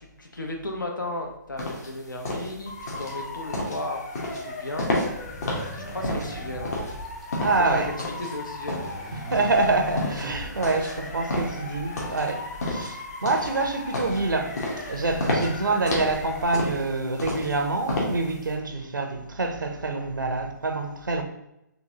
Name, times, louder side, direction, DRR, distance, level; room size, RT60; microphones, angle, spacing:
voice 1, 0.0-4.1 4.4-4.9 5.7-6.9 7.5-9.1, left 1 dB, 90° left, 0.7 m, -35 dB
sound 1, 1.6-18.5, left 1 dB, 60° left, 1.1 m, -31 dB
Motor vehicle (road) / Siren, 2.7-16.4, left 2 dB, 40° left, 0.8 m, -38 dB
sound 2, 5.1-7.8 8.2-11.1, left 2 dB, ahead, 0.3 m, -41 dB
voice 2, 7.4-7.9 9.1-14.6 14.9-21.2, right 3 dB, 85° right, 0.6 m, -26 dB
3.8 x 2.5 x 2.8 m
figure-of-eight pair, 140°, 10 cm